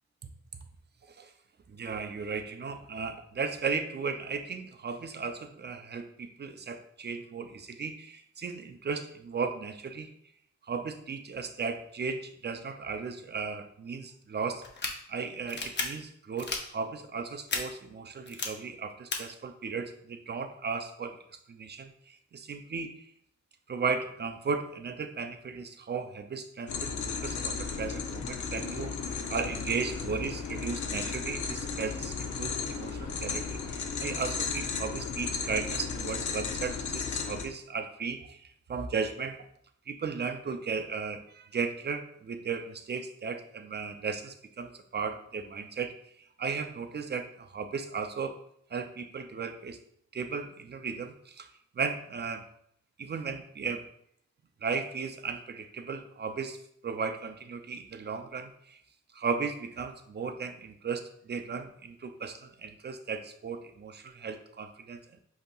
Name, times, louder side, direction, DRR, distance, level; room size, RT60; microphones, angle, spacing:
voice 1, 1.7-10.1 10.7-14.6 15.1-21.2 21.5-23.1 23.7-28.9 29.3-39.4 39.9-45.9 46.4-48.3 48.7-49.8 50.1-51.5 51.8-52.5 53.0-53.9 54.6-58.8 59.1-65.2, right 5 dB, 35° right, 8 dB, 0.4 m, -36 dB
sound 1, 14.6-14.9 15.5-15.8 16.4-16.6 17.5-17.6 18.3-18.5 19.1-19.2, left 4 dB, 40° left, 0.6 m, -32 dB
sound 2, 26.7-37.5, left 5 dB, 90° left, 0.6 m, -35 dB
7.7 x 2.8 x 2.3 m, 0.69 s
wide cardioid pair, 155°, 29 cm